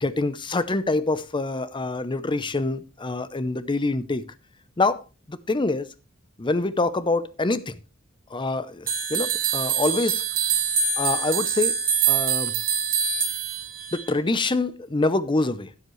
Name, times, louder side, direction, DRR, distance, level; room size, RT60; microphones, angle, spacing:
voice 1, 0.0-4.2 4.8-5.0 5.3-5.9 6.4-7.8 8.3-10.2 11.0-11.8 12.1-12.5 13.9-15.7, left 2 dB, 20° left, 0.6 m, -25 dB
sound 1, 8.9-14.1, right 7 dB, 40° right, 1.6 m, -25 dB
12.5 x 9.5 x 3.1 m
head